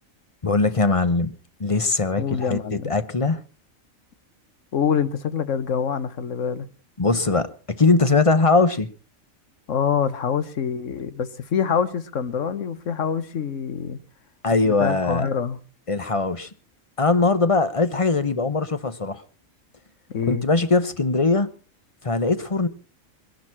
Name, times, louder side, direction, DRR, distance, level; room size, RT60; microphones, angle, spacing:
voice 1, 0.4-3.4 7.0-8.9 14.4-15.3 15.9-16.5 17.0-19.2 20.3-21.5 22.0-22.7, left 3 dB, 30° left, 0.8 m, -21 dB
voice 2, 2.2-2.9 4.7-6.7 9.7-14.0 14.6-15.6 20.1-20.4, left 7 dB, 65° left, 1.4 m, -25 dB
21.5 x 11.0 x 5.8 m
omnidirectional pair, 1.4 m